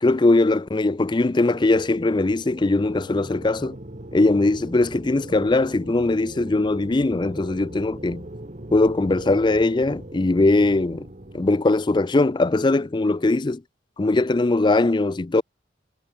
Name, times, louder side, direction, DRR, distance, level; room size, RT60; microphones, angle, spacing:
voice 1, 0.0-3.8 4.1-8.3 8.7-11.1 11.3-13.6 14.0-15.4, left 2 dB, 25° left, 0.4 m, -20 dB
sound 1, 1.5-11.6, right 1 dB, 40° right, 2.0 m, -40 dB
head